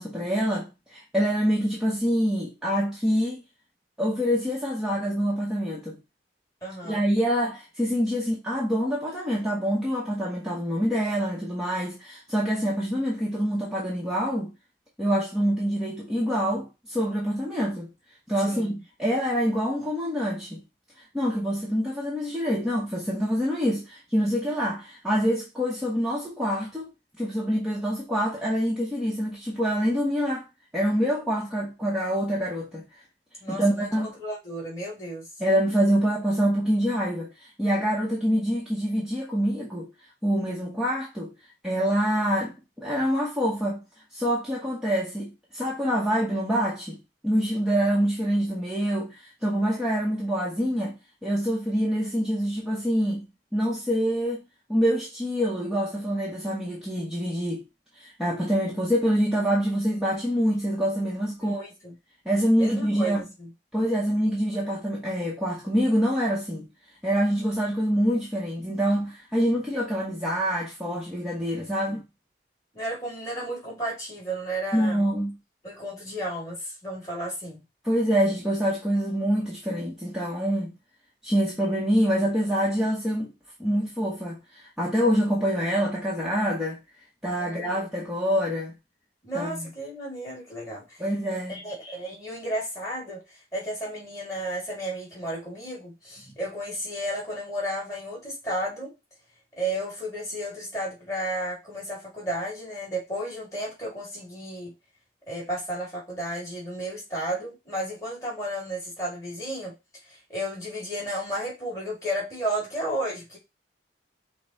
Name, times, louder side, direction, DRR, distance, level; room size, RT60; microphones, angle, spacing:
voice 1, 0.0-3.4 4.0-6.0 6.8-14.5 15.0-17.9 18.3-18.7 19.0-20.6 21.0-26.9 27.2-30.5 30.7-32.8 33.5-34.1 35.4-39.9 40.2-41.3 41.6-43.8 44.1-47.0 47.2-50.9 51.2-53.2 53.5-54.4 54.7-57.6 58.0-61.6 62.2-63.2 63.7-66.7 67.0-72.0 74.7-75.3 77.8-80.7 81.2-83.3 83.6-86.8 87.2-88.7 89.3-89.7 91.0-91.6 96.3-96.4, equal, 5° right, 0.9 m, -26 dB
voice 2, 6.6-7.0 18.4-18.8 33.4-35.3 61.4-62.0 62.6-63.5 72.7-75.1 75.6-77.6 87.4-87.8 89.2-91.0 91.5-98.9 99.6-104.7 105.3-109.7 110.0-113.4, right 1 dB, 15° left, 2.2 m, -33 dB
5.3 x 2.2 x 4.0 m
head